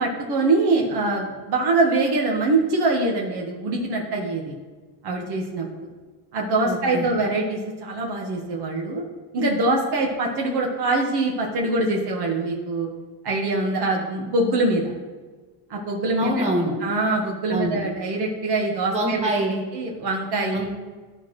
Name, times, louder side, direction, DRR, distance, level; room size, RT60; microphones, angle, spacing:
voice 1, 0.0-4.5 5.0-5.9 6.3-9.0 9.3-12.9 13.2-14.9 15.7-16.3 16.8-19.3 19.7-20.7, right 2 dB, 50° right, -1 dB, 1.5 m, -23 dB
voice 2, 6.6-7.1 16.2-16.7 17.5-17.8 18.9-19.6 20.5-20.7, right 1 dB, 15° right, -3 dB, 2.1 m, -25 dB
13.0 x 4.4 x 3.1 m, 1.4 s
cardioid pair, 110°, 48 cm